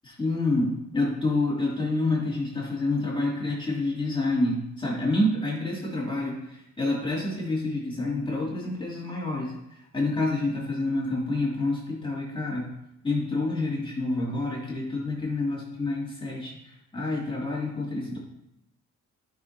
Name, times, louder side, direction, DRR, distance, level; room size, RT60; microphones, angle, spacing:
voice 1, 0.0-12.7 13.0-16.6 16.9-18.2, left 2 dB, 15° left, -5 dB, 2.9 m, -28 dB
11.5 x 6.2 x 2.9 m, 0.84 s
cardioid pair, 90°, 30 cm